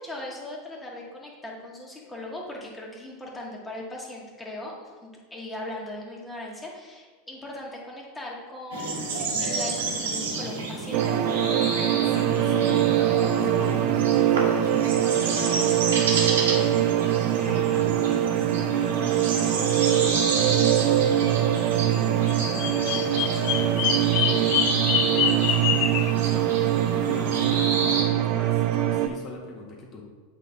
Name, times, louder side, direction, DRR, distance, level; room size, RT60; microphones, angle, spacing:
voice 1, 0.0-4.7 5.0-11.4, left 1 dB, 10° left, -3 dB, 1.8 m, -39 dB
sound 1, 8.7-28.0, right 3 dB, 75° right, 1.5 m, -30 dB
sound 2, 10.9-29.1, right 12 dB, 50° right, 0.5 m, -23 dB
voice 2, 12.0-25.7 26.1-30.0, left 3 dB, 40° left, -1 dB, 1.6 m, -40 dB
Bird vocalization bird call bird song, 22.3-26.1, left 9 dB, 55° left, 0.5 m, -26 dB
8.0 x 4.3 x 3.5 m, 1.5 s
hypercardioid pair, 90°, 0 cm